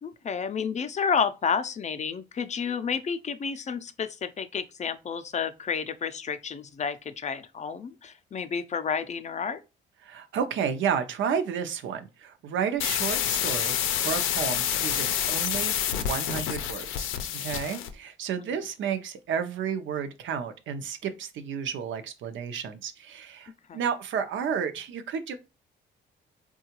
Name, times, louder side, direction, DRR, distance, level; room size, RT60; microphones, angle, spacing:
voice 1, 0.0-9.6 18.4-18.6 23.7-23.8, left 6 dB, 35° left, 0.4 m, -31 dB
voice 2, 10.0-13.8 14.0-25.3, right 7 dB, 75° right, 0.6 m, -32 dB
sound 1, 12.8-17.9, left 10 dB, 90° left, 0.5 m, -28 dB
3.6 x 2.3 x 2.9 m
cardioid pair, 90°, 20 cm